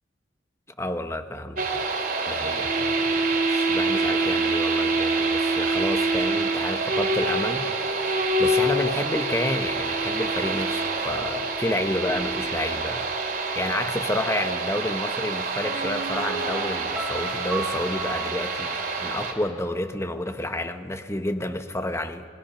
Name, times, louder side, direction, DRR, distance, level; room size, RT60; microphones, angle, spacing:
voice 1, 0.8-1.8 2.3-13.1 13.5-22.2, left 1 dB, 15° left, 8 dB, 1.0 m, -30 dB
sound 1, 1.6-19.3, right 3 dB, 50° right, 3.0 m, -26 dB
Piano, 15.6-19.4 19.7-19.8, right 3 dB, 10° right, 4.1 m, -35 dB
25.5 x 21.5 x 5.8 m, 2.1 s
head